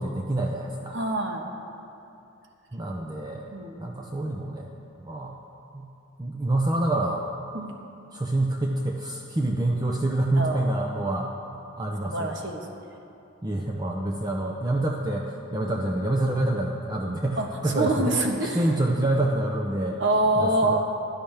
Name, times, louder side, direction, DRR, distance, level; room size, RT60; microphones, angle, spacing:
voice 1, 0.0-1.0 2.7-3.5 3.8-4.7 5.0-5.4 5.7-5.9 6.2-7.2 8.1-11.3 11.8-12.3 13.4-18.1 18.4-20.0 20.3-20.8, right 1 dB, 20° right, 0 dB, 0.6 m, -27 dB
voice 2, 0.9-1.4 3.5-3.8 7.5-7.8 10.4-10.7 12.0-12.6 15.6-15.8 17.4-17.5 17.7-18.8 20.0-20.8, right 2 dB, 55° right, 2 dB, 1.2 m, -25 dB
16.0 x 11.5 x 3.4 m, 2.7 s
head